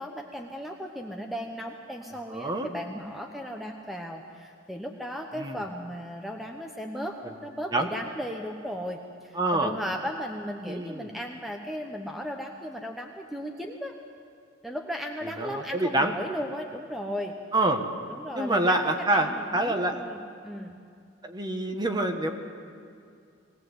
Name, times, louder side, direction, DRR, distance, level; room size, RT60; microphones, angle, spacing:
voice 1, 0.0-7.2 7.4-13.9 14.6-17.3 18.1-18.8 19.1-20.8 21.7-21.8, equal, ahead, 2 dB, 1.0 m, -36 dB
voice 2, 2.3-2.7 5.4-5.6 7.7-7.9 9.3-9.7 10.6-11.1 15.4-16.1 17.5-17.8 18.3-19.9 21.2-22.3, right 2 dB, 20° right, 5 dB, 1.4 m, -26 dB
21.0 x 17.5 x 8.1 m, 2.3 s
head